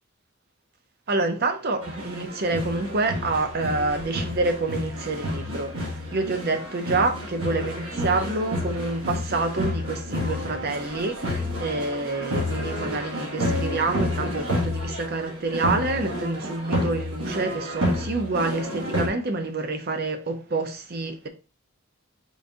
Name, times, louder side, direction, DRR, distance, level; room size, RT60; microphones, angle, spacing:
voice 1, 1.1-21.3, right 3 dB, 45° right, 0.6 m, -27 dB
sound 1, 1.8-19.1, left 1 dB, 85° right, 1.3 m, -30 dB
3.9 x 2.6 x 3.4 m
head